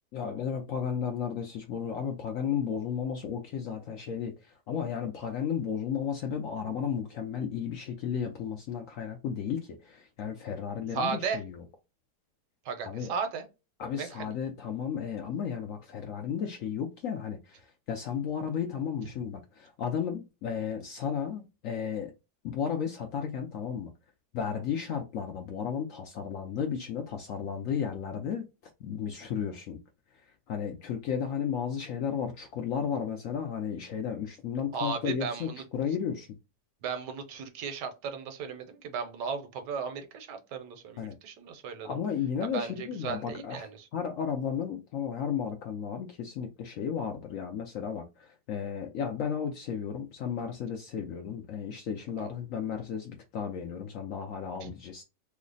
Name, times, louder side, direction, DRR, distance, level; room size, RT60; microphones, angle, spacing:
voice 1, 0.1-11.6 12.9-13.1 13.8-22.1 22.4-23.9 24.3-28.5 28.8-29.8 30.5-36.4 41.0-41.1 41.8-55.0, left 7 dB, 70° left, 0.8 m, -34 dB
voice 2, 10.9-11.4 12.6-13.4 14.0-14.3 34.7-35.6 36.8-41.9 42.5-43.9 52.2-52.3 54.6-54.7, right 5 dB, 80° right, 1.3 m, -35 dB
3.1 x 2.0 x 3.7 m
omnidirectional pair, 1.8 m